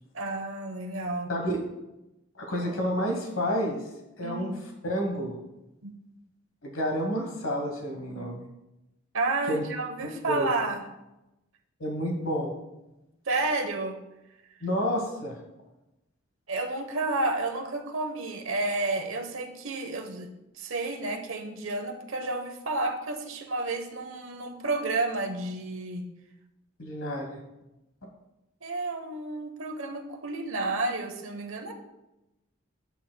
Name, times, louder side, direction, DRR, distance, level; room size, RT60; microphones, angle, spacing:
voice 1, 0.1-1.3 4.2-4.6 5.8-5.9 9.1-10.8 13.3-14.0 16.5-20.3 20.6-26.0 28.6-31.7, right 2 dB, 80° right, 4 dB, 1.0 m, -31 dB
voice 2, 2.4-3.8 4.2-4.5 4.8-5.3 6.6-8.4 9.5-9.6 10.3-10.5 11.8-12.5 14.6-15.4 26.8-27.4, equal, 80° left, 1 dB, 1.2 m, -29 dB
10.0 x 8.3 x 2.2 m, 0.95 s
head